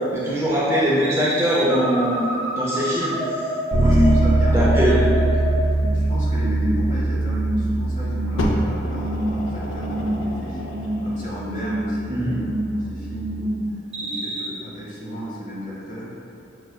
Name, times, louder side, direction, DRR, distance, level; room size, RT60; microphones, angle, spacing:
voice 1, 0.1-2.3 2.5-3.5 3.8-5.2 12.1-12.4, equal, 15° right, -8 dB, 0.5 m, -21 dB
sound 1, 1.0-6.0 6.3-6.8 7.2-7.7 8.1-8.5 8.9-9.4 9.7-10.3 10.6-11.1 11.4-11.9 12.2-12.7 13.1-13.6 13.9-14.4, right 1 dB, 35° right, 1.1 m, -28 dB
voice 2, 3.7-5.0 5.8-10.6 11.0-12.3 12.7-13.6 14.0-16.1, equal, 40° left, -7 dB, 1.1 m, -34 dB
Bass guitar, 3.7-13.5, right 2 dB, 60° right, 0.7 m, -23 dB
Fire, 8.4-11.2 12.0-12.1, left 1 dB, 85° left, 0.5 m, -30 dB
6.2 x 3.3 x 2.2 m, 2.8 s
head